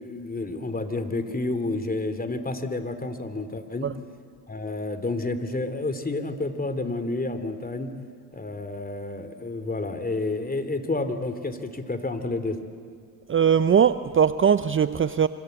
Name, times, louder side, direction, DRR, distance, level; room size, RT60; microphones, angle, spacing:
voice 1, 0.0-3.9 4.5-7.9 8.3-12.6, left 2 dB, 20° left, 10 dB, 3.1 m, -30 dB
voice 2, 13.3-15.3, right 7 dB, 30° right, 13 dB, 0.8 m, -20 dB
28.0 x 25.5 x 8.2 m, 2.2 s
hypercardioid pair, 65°, 44 cm